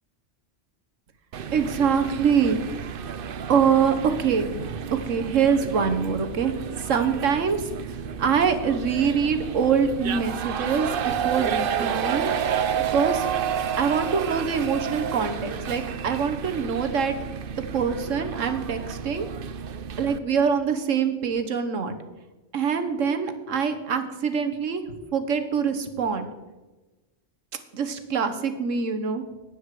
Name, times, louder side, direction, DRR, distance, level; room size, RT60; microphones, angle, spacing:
sound 1, 1.3-20.2, right 8 dB, 55° right, 0.8 m, -31 dB
voice 1, 1.5-2.6 3.5-4.8 5.1-12.3 12.9-13.3 13.8-17.2 17.5-19.3 20.0-22.0 22.5-26.3 27.7-29.2, right 6 dB, 90° right, 8 dB, 1.6 m, -24 dB
12.5 x 9.9 x 4.9 m, 1.1 s
omnidirectional pair, 1.3 m